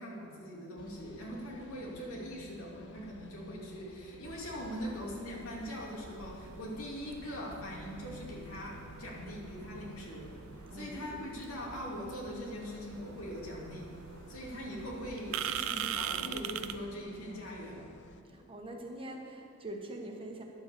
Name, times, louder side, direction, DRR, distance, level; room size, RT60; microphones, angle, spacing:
voice 1, 0.0-10.3 10.7-13.9 14.3-17.9, equal, 90° left, -3 dB, 2.7 m, -41 dB
sound 1, 0.8-18.2, left 3 dB, 55° left, 0.6 m, -55 dB
sound 2, 4.2-16.8, right 9 dB, 70° right, 0.5 m, -43 dB
voice 2, 10.7-11.2 18.3-20.4, right 1 dB, 25° right, 1 dB, 1.2 m, -43 dB
11.0 x 7.8 x 6.9 m, 2.6 s
head